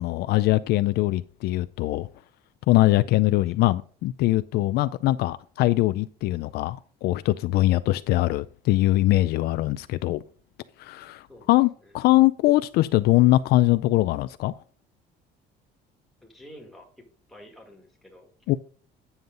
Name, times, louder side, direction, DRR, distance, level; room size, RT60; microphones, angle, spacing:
voice 1, 0.0-2.1 2.7-10.2 10.8-11.7 11.9-14.5 18.5-18.6, left 17 dB, 65° left, 0.4 m, -22 dB
voice 2, 16.2-17.0 17.3-18.3, equal, ahead, 1.9 m, -49 dB
9.5 x 7.2 x 3.8 m
cardioid pair, 175°, 18 cm